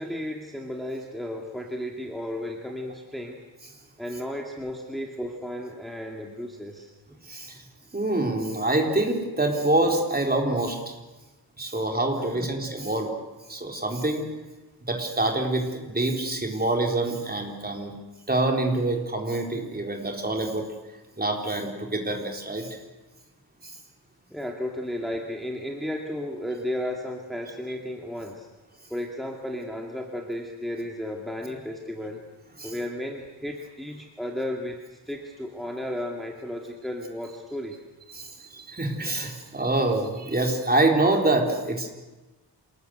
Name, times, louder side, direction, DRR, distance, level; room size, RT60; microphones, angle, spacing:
voice 1, 0.0-3.4 4.0-6.9 12.3-12.6 24.3-28.5 28.9-32.2 32.6-37.8, left 1 dB, ahead, 1 dB, 2.3 m, -34 dB
voice 2, 7.3-7.6 7.9-10.9 11.6-13.1 13.5-14.3 14.9-18.0 18.3-20.7 21.2-22.8 23.6-23.7 32.6-32.7 38.1-41.9, right 2 dB, 20° right, 2 dB, 3.9 m, -26 dB
27.5 x 19.5 x 8.0 m, 1.1 s
wide cardioid pair, 140°, 42 cm